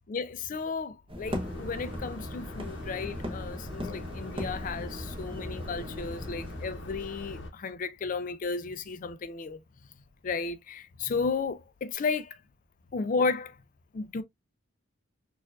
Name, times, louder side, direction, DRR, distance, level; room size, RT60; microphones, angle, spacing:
voice 1, 0.1-9.6 10.2-12.4 12.9-13.5 13.9-14.2, left 4 dB, 40° left, 0.4 m, -33 dB
sound 1, 1.1-6.8, equal, 25° right, 0.7 m, -39 dB
sound 2, 1.3-7.5, left 1 dB, 60° left, 0.8 m, -41 dB
4.4 x 2.4 x 2.3 m
head